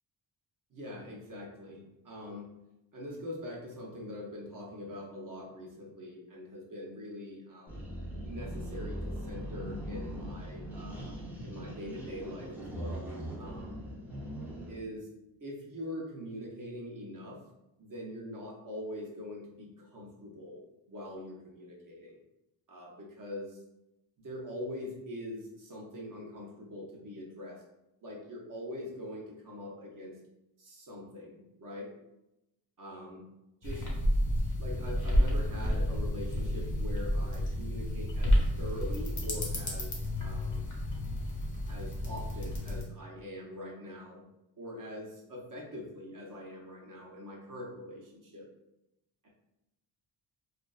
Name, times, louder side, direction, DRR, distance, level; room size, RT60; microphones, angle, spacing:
voice 1, 0.7-2.5 2.9-7.8 8.2-11.2 11.4-13.1 13.4-13.8 14.7-15.1 15.4-17.4 17.8-20.6 20.9-22.2 22.7-23.6 24.2-27.6 28.0-30.2 30.6-31.9 32.8-33.2 33.6-33.8 34.6-40.7 41.7-44.2 44.6-48.4 49.2-49.3, left 1 dB, 45° right, -2 dB, 0.7 m, -43 dB
sound 1, 7.7-14.9, equal, 5° right, 0.5 m, -40 dB
sound 2, 33.6-42.8, equal, 40° left, 0.7 m, -30 dB
2.4 x 2.2 x 2.3 m, 0.90 s
wide cardioid pair, 115°, 47 cm